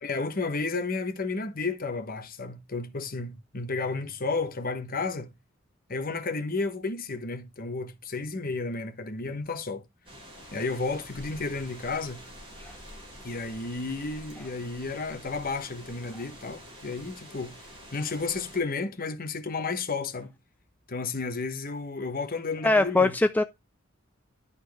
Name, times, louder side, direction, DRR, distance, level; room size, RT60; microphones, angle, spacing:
voice 1, 0.0-5.3 5.9-9.8 10.5-12.3 13.2-17.6 17.9-20.3 20.9-23.1, left 3 dB, 45° left, 1.1 m, -32 dB
sound 1, 10.1-18.6, equal, 25° right, 3.7 m, -47 dB
voice 2, 22.6-23.4, left 2 dB, 10° left, 0.3 m, -22 dB
11.5 x 4.2 x 3.4 m
head